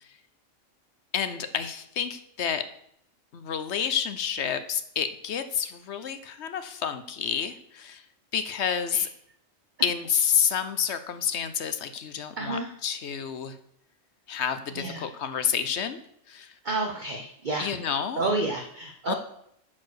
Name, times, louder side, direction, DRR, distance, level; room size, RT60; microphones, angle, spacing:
voice 1, 1.1-2.6 3.3-8.0 8.3-9.1 9.8-13.5 14.3-16.0 16.3-16.5 17.6-18.2 19.1-19.2, left 8 dB, 65° left, 10 dB, 1.0 m, -29 dB
voice 2, 12.4-12.7 14.7-15.1 16.6-17.7 18.2-19.1, right 2 dB, 40° right, 2 dB, 1.0 m, -30 dB
9.9 x 4.7 x 6.3 m, 0.72 s
omnidirectional pair, 1.3 m